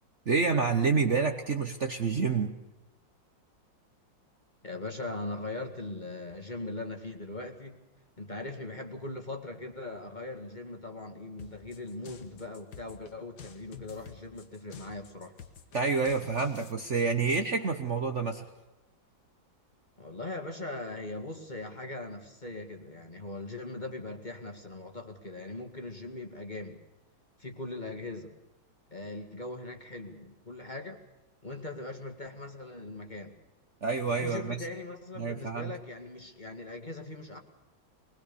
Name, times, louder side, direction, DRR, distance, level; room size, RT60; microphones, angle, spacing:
voice 1, 0.3-2.6 15.7-18.4 33.8-34.6 35.2-35.7, right 4 dB, 40° right, 5 dB, 1.3 m, -28 dB
voice 2, 4.6-7.8 8.2-15.3 20.0-26.8 27.4-28.3 28.9-31.0 31.4-33.3 34.1-37.4, left 2 dB, 25° left, 4 dB, 2.2 m, -40 dB
sound 1, 11.4-16.7, left 7 dB, 60° left, 2.0 m, -49 dB
23.0 x 20.5 x 7.0 m, 0.98 s
omnidirectional pair, 2.1 m